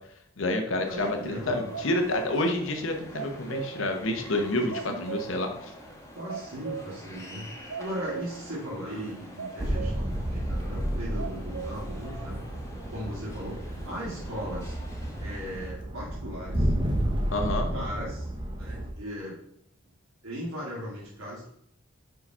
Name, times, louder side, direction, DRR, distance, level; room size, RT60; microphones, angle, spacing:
voice 1, 0.4-5.5 17.3-17.7, left 1 dB, 70° left, 4 dB, 0.9 m, -28 dB
sound 1, 0.8-15.7, left 1 dB, 15° left, 1.1 m, -46 dB
voice 2, 0.9-1.8 4.6-5.1 6.1-12.4 12.9-14.7 15.2-16.7 17.4-19.4 20.2-21.5, equal, 75° right, -8 dB, 2.2 m, -38 dB
sound 2, 1.7-2.6 2.8-4.0 4.2-4.4 4.7-5.5 5.8-5.9 6.3-7.1 7.4-8.5 8.8-8.9 9.4-10.2 10.5-10.6 11.2-11.9, right 7 dB, 60° right, 0.5 m, -38 dB
sound 3, 9.6-18.9, equal, 25° right, 0.9 m, -31 dB
5.0 x 4.9 x 5.5 m, 0.73 s
head